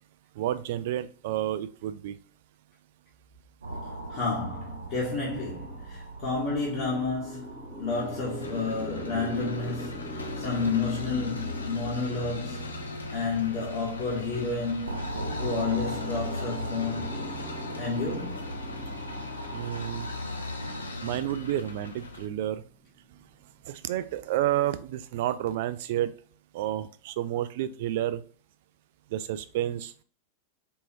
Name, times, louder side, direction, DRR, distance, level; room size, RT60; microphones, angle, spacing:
voice 1, 0.4-2.1 19.5-20.1 21.0-22.6 23.7-26.1 26.5-28.2 29.1-29.9, right 12 dB, 50° right, 0.3 m, -30 dB
sound 1, 3.6-20.8, right 1 dB, 75° right, 0.9 m, -41 dB
voice 2, 4.1-12.8 13.1-15.1 15.4-17.3 17.8-18.4, left 4 dB, 40° left, 1.3 m, -31 dB
sound 2, 6.6-23.7, right 1 dB, 5° right, 0.9 m, -45 dB
sound 3, 7.9-22.3, left 2 dB, 75° left, 0.5 m, -38 dB
4.5 x 3.0 x 2.6 m
figure-of-eight pair, 90°, 0 cm